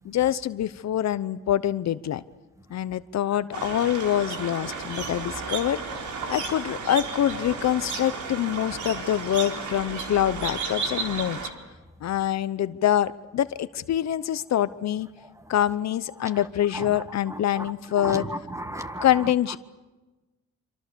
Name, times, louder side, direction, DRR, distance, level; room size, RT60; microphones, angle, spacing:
voice 1, 0.0-2.2 2.7-5.8 6.3-11.4 12.0-15.1 15.5-18.3 19.0-19.6, left 11 dB, 60° left, 14 dB, 0.9 m, -25 dB
sound 1, 3.5-11.5, right 5 dB, 70° right, 4.2 m, -33 dB
voice 2, 18.0-19.1, right 1 dB, 10° right, 9 dB, 1.8 m, -33 dB
26.5 x 26.0 x 6.9 m, 1.1 s
cardioid pair, 90°, 30 cm